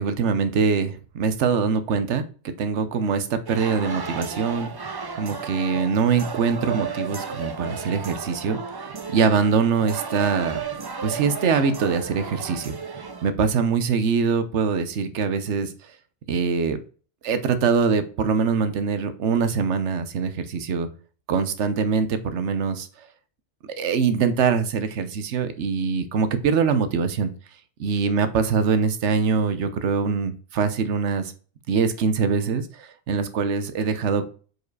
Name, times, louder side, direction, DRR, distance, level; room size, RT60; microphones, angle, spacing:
voice 1, 0.0-4.7 5.2-10.6 11.0-12.7 13.2-15.7 16.3-16.8 17.2-20.9 21.3-22.9 23.8-27.3 27.8-31.3 31.7-34.3, right 5 dB, 80° right, 11 dB, 1.1 m, -23 dB
sound 1, 3.5-13.3, right 5 dB, 40° right, 0.3 m, -34 dB
4.8 x 4.8 x 4.6 m, 0.39 s
omnidirectional pair, 1.2 m